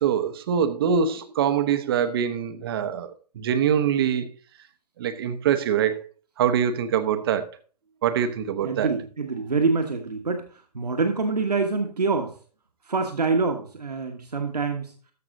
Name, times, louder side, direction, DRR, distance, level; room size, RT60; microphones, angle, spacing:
voice 1, 0.0-4.3 5.0-6.0 6.4-7.5 8.0-8.9, right 8 dB, 35° right, 0.8 m, -24 dB
voice 2, 8.6-12.3 12.8-14.9, right 4 dB, 70° right, 1.5 m, -26 dB
13.5 x 6.0 x 3.9 m
figure-of-eight pair, 125°, 21 cm